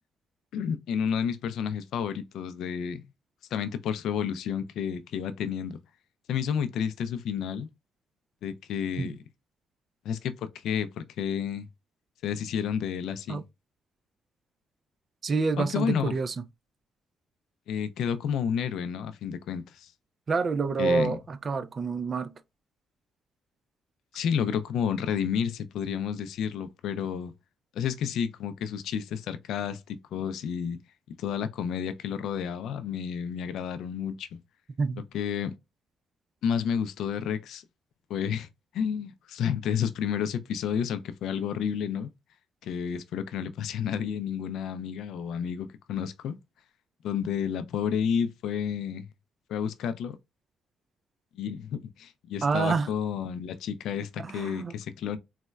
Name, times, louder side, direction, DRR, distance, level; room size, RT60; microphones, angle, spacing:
voice 1, 0.5-3.0 3.5-5.8 6.3-7.7 8.4-9.2 10.0-11.7 12.2-13.4 15.6-16.1 17.7-19.9 20.8-21.2 24.1-27.3 27.8-30.8 31.2-34.3 35.1-35.5 36.4-37.6 38.1-38.5 38.7-42.1 42.6-46.4 47.0-49.1 49.5-50.2 51.4-55.2, left 8 dB, 80° left, 0.4 m, -30 dB
voice 2, 15.2-16.3 20.3-22.3 34.8-35.0 52.4-52.9 54.2-54.7, right 4 dB, 40° right, 0.3 m, -27 dB
4.0 x 2.1 x 2.2 m
cardioid pair, 90°, 0 cm